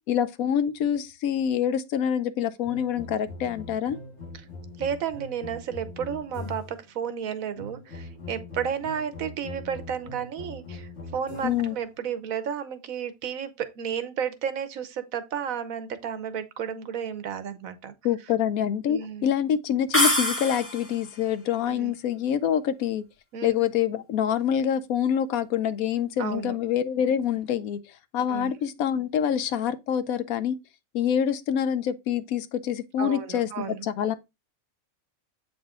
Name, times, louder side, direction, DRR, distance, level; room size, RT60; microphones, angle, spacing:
voice 1, 0.1-4.0 11.4-11.8 18.0-23.1 23.4-27.8 28.1-30.6 30.9-34.1, left 9 dB, 85° left, 1.1 m, -26 dB
sound 1, 2.6-6.9 7.6-11.8, left 2 dB, 55° left, 1.8 m, -41 dB
voice 2, 4.8-17.9 18.9-19.3 21.7-21.9 23.3-23.5 26.2-26.6 28.3-28.6 33.0-33.9, right 8 dB, 80° right, 1.2 m, -32 dB
sound 2, 19.9-21.0, left 1 dB, 10° left, 1.1 m, -24 dB
7.9 x 4.0 x 3.6 m
omnidirectional pair, 1.4 m